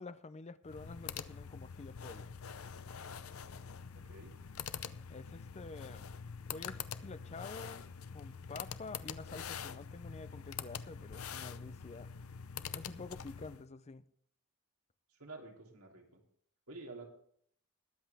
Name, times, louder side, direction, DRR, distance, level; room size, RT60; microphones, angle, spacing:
voice 1, 0.0-2.3 5.1-6.1 6.5-12.1 12.7-14.0, left 3 dB, 30° left, 0.5 m, -48 dB
sound 1, 0.6-13.6, left 7 dB, 75° left, 0.7 m, -45 dB
voice 2, 3.9-4.3 15.1-16.2 16.7-17.1, right 3 dB, 85° right, 3.1 m, -50 dB
21.0 x 8.0 x 3.5 m
head